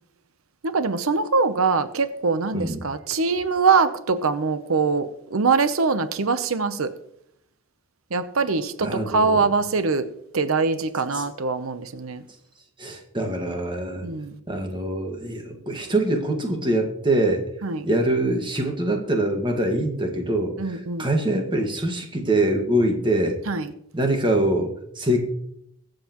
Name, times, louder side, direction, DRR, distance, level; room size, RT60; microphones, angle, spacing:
voice 1, 0.7-6.9 8.1-10.1 10.3-12.2 14.0-14.4 17.6-17.9 20.6-21.2 23.5-23.7, right 4 dB, 90° right, 11 dB, 0.8 m, -23 dB
voice 2, 2.5-2.9 8.8-9.4 11.1-11.3 12.8-14.1 14.5-17.4 17.8-23.4 23.9-25.2, right 1 dB, 25° right, 3 dB, 1.6 m, -24 dB
23.0 x 7.7 x 3.0 m, 0.74 s
head